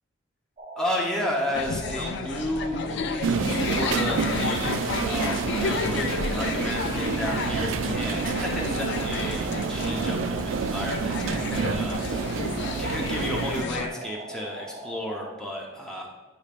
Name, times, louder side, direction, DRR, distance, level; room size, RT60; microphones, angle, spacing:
sound 1, 0.6-15.3, right 2 dB, 35° right, 0.7 m, -41 dB
voice 1, 0.8-16.1, left 1 dB, 5° left, -3 dB, 0.9 m, -33 dB
sound 2, 1.5-13.9, left 4 dB, 60° left, 0.4 m, -32 dB
sound 3, 3.2-13.6, right 5 dB, 75° right, 0.4 m, -29 dB
10.0 x 5.1 x 2.5 m, 1.2 s
head